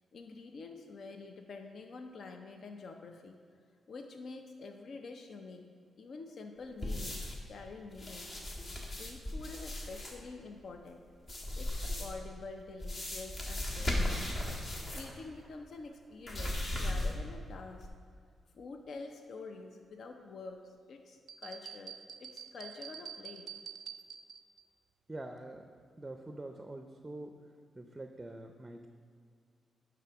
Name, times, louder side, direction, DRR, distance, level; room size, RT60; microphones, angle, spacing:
voice 1, 0.1-3.4 3.9-5.6 6.0-8.3 8.9-11.0 11.6-14.2 14.9-17.9 18.5-23.5, left 3 dB, 65° left, 5 dB, 0.5 m, -47 dB
sound 1, 6.8-7.5 7.9-10.1 11.2-12.2 12.8-15.2 15.4-15.5 16.2-17.3 17.8-17.9, left 1 dB, 45° left, 1.5 m, -36 dB
sound 2, 21.3-24.6, right 8 dB, 75° right, 0.4 m, -47 dB
voice 2, 25.1-25.7 26.0-27.4 27.8-28.9, right 2 dB, 20° right, 5 dB, 0.5 m, -45 dB
9.5 x 3.6 x 5.7 m, 2.1 s
cardioid pair, 80°, 0 cm